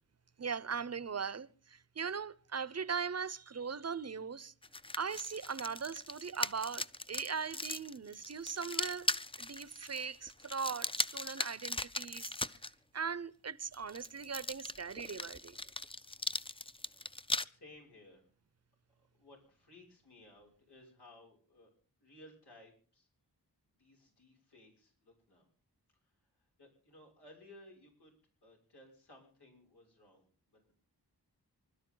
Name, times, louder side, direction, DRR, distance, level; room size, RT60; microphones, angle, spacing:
voice 1, 0.4-4.5 4.9-9.1 9.4-12.3 12.9-15.6, right 6 dB, 40° right, 0.8 m, -39 dB
sound 1, 4.6-12.7 13.7-17.5, left 2 dB, 15° left, 0.6 m, -39 dB
voice 2, 17.5-18.3 19.0-21.7 22.0-23.1 23.7-25.5 26.0-28.1 28.4-30.7, left 1 dB, 90° left, 6.6 m, -59 dB
26.0 x 12.5 x 3.9 m
wide cardioid pair, 75°, 39 cm